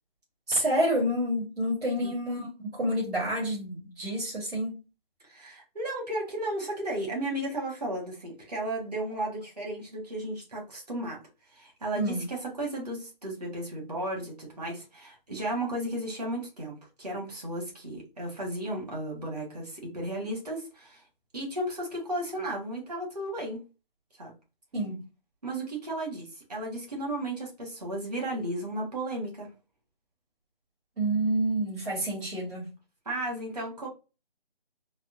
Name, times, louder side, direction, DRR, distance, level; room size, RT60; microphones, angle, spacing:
voice 1, 0.5-2.5 2.7-4.8 12.0-12.3 24.7-25.0 31.0-32.7, right 1 dB, 90° right, 1.8 m, -28 dB
voice 2, 5.2-11.2 11.5-21.0 21.3-23.6 24.2-24.3 25.4-29.5 33.0-33.9, right 1 dB, 40° right, 1.4 m, -34 dB
4.1 x 2.1 x 2.5 m
figure-of-eight pair, 175°, 29 cm